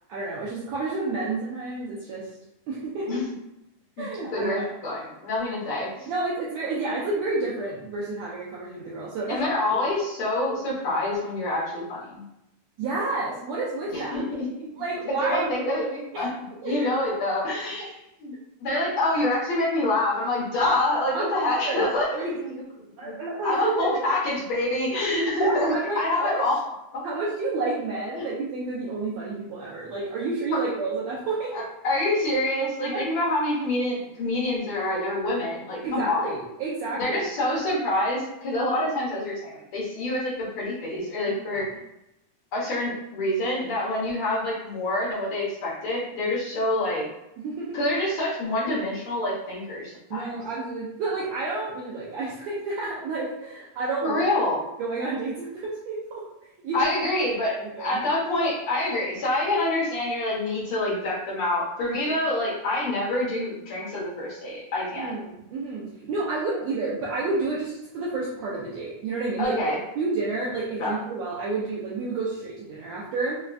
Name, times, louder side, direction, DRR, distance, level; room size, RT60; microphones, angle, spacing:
voice 1, 0.1-2.3 2.7-3.2 4.0-4.7 6.1-9.8 12.8-14.2 14.8-15.5 16.1-16.2 16.6-16.9 21.1-22.3 23.0-23.9 25.4-26.4 27.0-31.6 32.9-33.0 35.8-37.2 38.7-38.8 41.5-41.6 47.4-47.8 50.1-54.2 54.8-56.2 56.6-57.0 57.4-58.0 65.0-69.5 70.0-73.4, right 3 dB, 85° right, -6 dB, 1.5 m, -30 dB
voice 2, 4.3-6.1 9.3-12.2 13.9-14.2 15.1-16.3 16.6-18.3 18.6-22.5 23.0-23.1 23.4-26.6 26.9-27.0 28.2-28.3 30.5-30.6 31.5-36.3 37.0-41.7 42.5-47.0 47.7-50.3 54.0-54.6 56.7-65.1 69.4-69.8 70.8-71.0, left 1 dB, 85° left, -7 dB, 1.2 m, -26 dB
5.1 x 2.2 x 2.4 m, 0.87 s
omnidirectional pair, 3.7 m